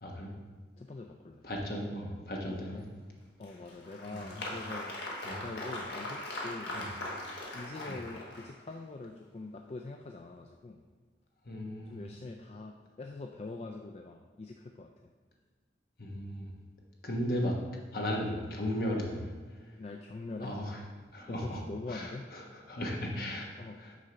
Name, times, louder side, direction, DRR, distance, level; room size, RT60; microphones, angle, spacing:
voice 1, 0.0-0.3 1.4-2.8 4.1-4.4 5.2-5.4 6.7-6.8 7.9-8.0 11.4-12.0 16.0-16.5 17.0-17.5 17.9-19.3 20.4-20.8 21.1-21.6 21.9-23.9, equal, 55° left, -1 dB, 1.2 m, -36 dB
voice 2, 0.8-1.4 2.7-2.9 3.4-5.0 5.4-6.8 7.5-10.8 11.9-14.9 17.1-17.2 19.8-20.6 21.3-22.3 23.6-23.8, left 3 dB, 35° left, 3 dB, 0.3 m, -44 dB
Applause, 3.4-8.7, left 1 dB, 75° left, 1.3 m, -40 dB
6.3 x 3.7 x 5.7 m, 1.4 s
head